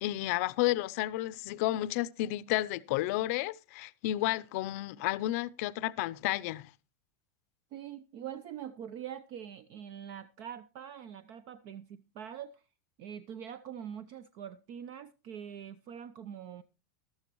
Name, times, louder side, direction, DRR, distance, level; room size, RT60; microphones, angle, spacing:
voice 1, 0.0-6.7, left 16 dB, 60° left, 0.6 m, -31 dB
voice 2, 7.7-12.6 13.0-16.6, right 9 dB, 50° right, 0.6 m, -44 dB
13.0 x 12.5 x 3.0 m
supercardioid pair, 130°, 9 cm